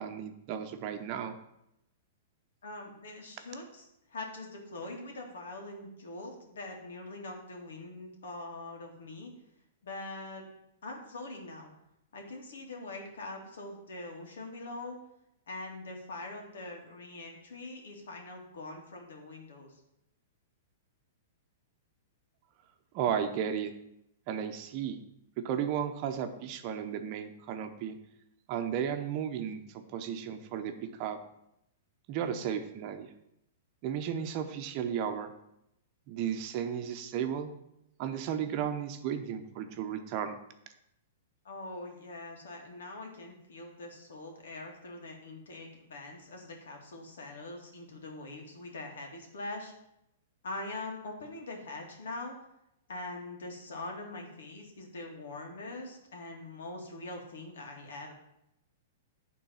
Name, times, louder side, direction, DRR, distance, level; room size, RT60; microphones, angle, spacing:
voice 1, 0.0-1.3 22.9-23.7 24.3-25.0 25.4-28.0 28.5-31.2 32.1-33.1 33.8-35.3 36.1-37.5 38.0-40.4, right 8 dB, 40° right, 7 dB, 0.8 m, -34 dB
voice 2, 2.6-9.3 9.8-10.5 10.8-11.7 12.1-15.0 15.5-19.8 41.4-49.7 50.4-52.4 52.9-58.1, left 2 dB, 80° left, 1 dB, 2.1 m, -43 dB
8.9 x 3.9 x 5.7 m, 0.81 s
hypercardioid pair, 135°, 0 cm